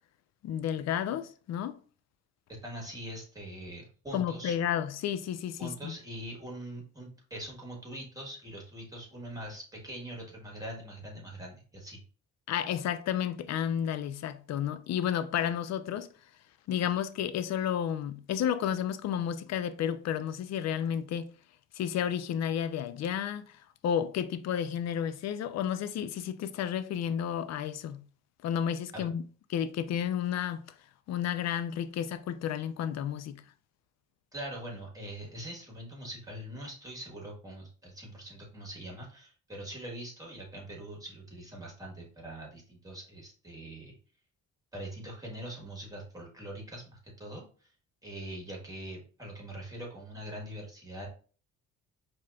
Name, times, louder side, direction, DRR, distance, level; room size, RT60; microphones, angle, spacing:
voice 1, 0.4-1.8 4.1-5.9 12.5-16.1 16.7-21.3 21.7-23.5 23.8-28.0 28.4-29.2 29.5-30.6 31.1-33.4, left 9 dB, 60° left, 0.4 m, -31 dB
voice 2, 2.6-4.6 5.6-12.0 28.9-29.1 34.3-43.9 44.7-47.7 48.0-51.1, right 1 dB, 10° right, 1.4 m, -43 dB
4.8 x 3.0 x 2.3 m
cardioid pair, 90°, 30 cm